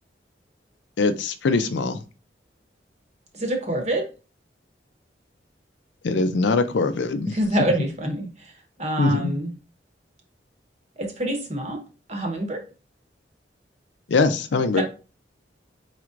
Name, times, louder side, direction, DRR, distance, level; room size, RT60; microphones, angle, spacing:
voice 1, 1.0-2.0 6.0-7.3 9.0-9.2 14.1-14.8, left 3 dB, 90° left, 0.5 m, -22 dB
voice 2, 3.3-4.1 7.3-9.5 11.0-11.8 12.1-12.6 14.8-14.9, right 1 dB, 40° right, 1.0 m, -26 dB
4.5 x 4.1 x 2.5 m
head